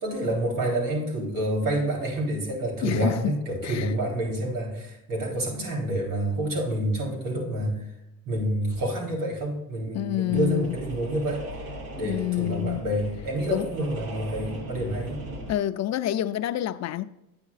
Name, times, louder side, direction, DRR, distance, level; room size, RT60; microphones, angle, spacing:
voice 1, 0.0-7.8 8.3-11.4 12.0-15.2, right 1 dB, 75° right, 3.5 m, -28 dB
voice 2, 2.8-3.3 3.6-4.0 9.9-10.8 12.0-12.8 13.5-13.7 15.5-17.0, left 13 dB, 55° left, 0.5 m, -27 dB
sound 1, 10.3-15.5, right 1 dB, 45° right, 1.3 m, -39 dB
9.6 x 9.0 x 2.4 m
cardioid pair, 135°, 33 cm